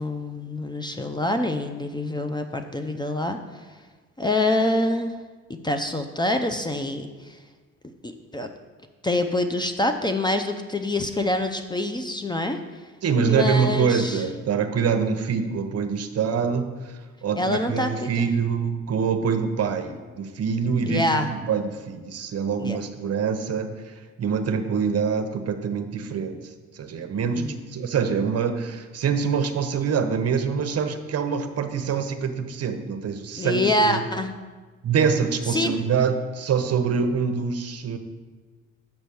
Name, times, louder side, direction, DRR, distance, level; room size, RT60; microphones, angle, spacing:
voice 1, 0.0-3.4 4.2-5.1 5.5-7.4 8.0-8.5 9.0-12.6 13.2-14.2 17.4-18.1 20.8-21.3 22.6-22.8 27.3-27.6 33.4-34.3 35.5-35.7, left 1 dB, 15° left, 6 dB, 0.6 m, -25 dB
voice 2, 13.0-26.4 26.7-34.1 34.8-38.0, right 6 dB, 55° right, 8 dB, 0.8 m, -25 dB
6.2 x 5.5 x 6.9 m, 1.4 s
cardioid pair, 90°, 30 cm